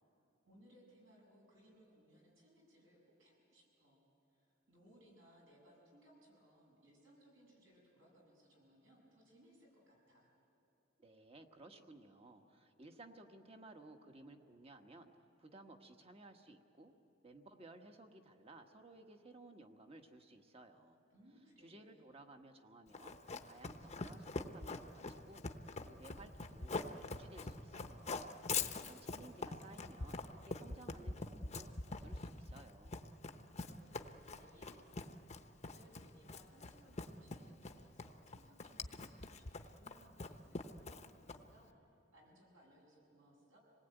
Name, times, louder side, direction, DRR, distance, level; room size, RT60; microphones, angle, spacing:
voice 1, 0.4-4.0 4.3-10.3 21.1-22.1 33.3-41.7 42.1-43.6, equal, 70° right, -2 dB, 8.0 m, -66 dB
voice 2, 11.0-15.1 15.4-16.9 17.2-21.0 21.6-25.5 25.8-28.3 28.5-33.0, right 2 dB, 30° right, 5 dB, 1.3 m, -58 dB
Run, 22.9-41.6, left 4 dB, 35° left, 0.9 m, -44 dB
26.5 x 19.5 x 9.1 m, 3.0 s
head